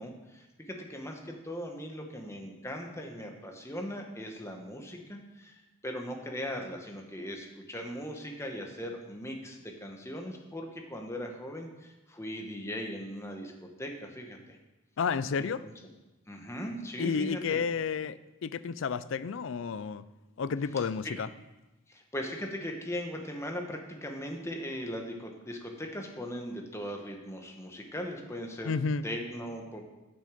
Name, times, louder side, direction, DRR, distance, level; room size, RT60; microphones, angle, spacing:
voice 1, 0.0-5.5 5.8-14.6 15.4-15.7 16.3-17.6 21.9-28.7 29.0-29.9, equal, 15° left, 1.2 m, -39 dB
voice 2, 15.0-15.7 17.0-20.0 20.4-21.3 28.6-29.0, left 5 dB, 65° left, 0.4 m, -31 dB
8.5 x 6.4 x 6.9 m
head